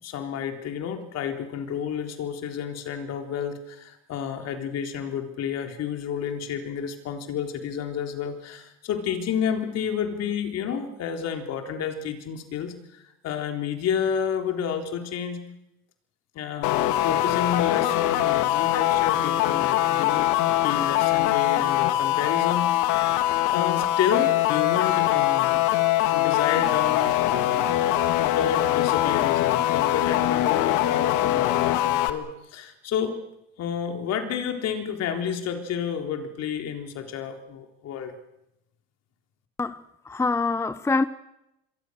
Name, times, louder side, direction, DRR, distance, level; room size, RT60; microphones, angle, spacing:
voice 1, 0.0-15.4 16.3-20.3 20.6-23.2 23.5-25.6 26.1-33.2 33.6-38.1, left 7 dB, 55° left, 3.8 m, -30 dB
sound 1, 16.6-32.1, left 14 dB, 70° left, 2.2 m, -22 dB
voice 2, 39.6-41.1, left 3 dB, 10° left, 0.8 m, -25 dB
26.5 x 23.5 x 6.7 m
supercardioid pair, 100°, 31 cm